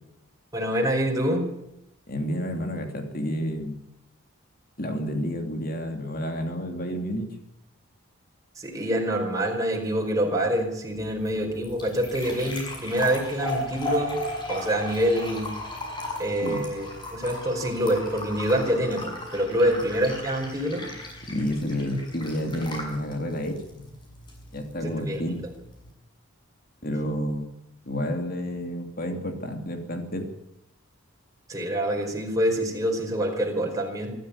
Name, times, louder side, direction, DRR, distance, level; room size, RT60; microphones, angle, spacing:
voice 1, 0.5-1.5 8.6-14.2 14.5-15.5 16.2-16.9 17.1-20.9 24.8-25.2 31.5-34.1, equal, 15° right, 1 dB, 4.9 m, -26 dB
voice 2, 2.1-3.8 4.8-7.3 16.4-16.7 21.3-23.9 24.5-25.4 26.8-27.5 27.8-30.3, equal, 45° left, 5 dB, 3.0 m, -30 dB
sound 1, 10.9-25.9, equal, 20° left, 6.6 m, -37 dB
26.0 x 13.0 x 9.9 m, 0.82 s
head